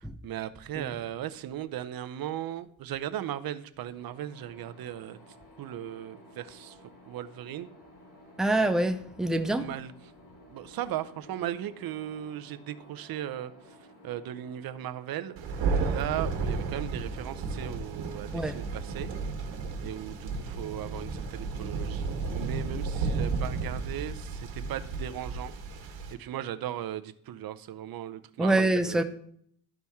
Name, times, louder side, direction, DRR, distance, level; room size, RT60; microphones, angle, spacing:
voice 1, 0.0-6.8 7.1-7.7 9.5-9.9 10.5-13.8 14.0-19.1 19.8-25.6 25.8-29.0, right 11 dB, 50° right, 0.6 m, -37 dB
sound 1, 3.9-17.5, left 1 dB, 65° left, 2.9 m, -55 dB
voice 2, 8.4-9.7 18.3-18.6 28.4-29.0, right 2 dB, ahead, 0.3 m, -26 dB
Thunder, 15.4-26.1, right 4 dB, 65° right, 1.3 m, -33 dB
12.0 x 4.2 x 3.5 m
cardioid pair, 120°, 48 cm